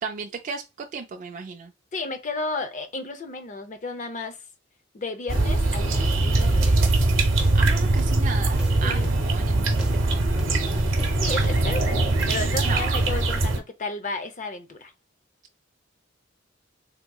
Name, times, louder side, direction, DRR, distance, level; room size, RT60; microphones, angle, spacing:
voice 1, 0.0-1.7 7.5-9.7 10.1-10.9 12.6-13.0, right 5 dB, 40° right, 0.3 m, -35 dB
voice 2, 1.9-4.4 4.9-6.8 8.8-9.1 11.2-14.9, left 3 dB, 40° left, 0.5 m, -33 dB
sound 1, 5.3-13.6, right 2 dB, 85° right, 0.8 m, -22 dB
sound 2, 7.4-12.3 12.6-13.2, right 1 dB, 5° right, 0.7 m, -41 dB
3.6 x 2.9 x 2.2 m
head